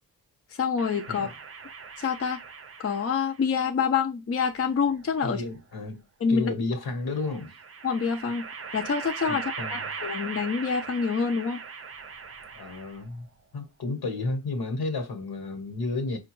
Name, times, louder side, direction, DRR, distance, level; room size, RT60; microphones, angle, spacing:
voice 1, 0.5-1.3 2.0-2.4 2.8-5.4 6.2-6.5 7.8-8.5 8.7-11.6, left 6 dB, 40° left, 0.5 m, -26 dB
sound 1, 0.8-3.4 4.6-5.6 7.2-13.2, right 5 dB, 40° right, 0.5 m, -40 dB
voice 2, 5.2-6.0 6.3-7.5 9.3-9.9 12.5-13.3 13.5-16.2, left 3 dB, 80° left, 1.2 m, -32 dB
4.7 x 2.3 x 3.0 m
wide cardioid pair, 90°, 37 cm